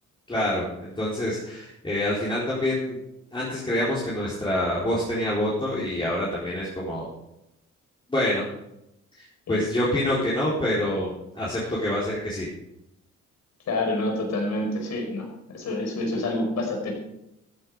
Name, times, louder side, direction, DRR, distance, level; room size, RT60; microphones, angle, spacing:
voice 1, 0.3-3.0 3.3-7.1 8.1-8.4 9.2-12.5, left 1 dB, 15° left, -7 dB, 4.2 m, -26 dB
voice 2, 13.7-15.3 15.5-16.9, left 2 dB, 65° left, 2 dB, 5.4 m, -27 dB
13.5 x 10.0 x 5.0 m, 0.84 s
cardioid pair, 90°, 30 cm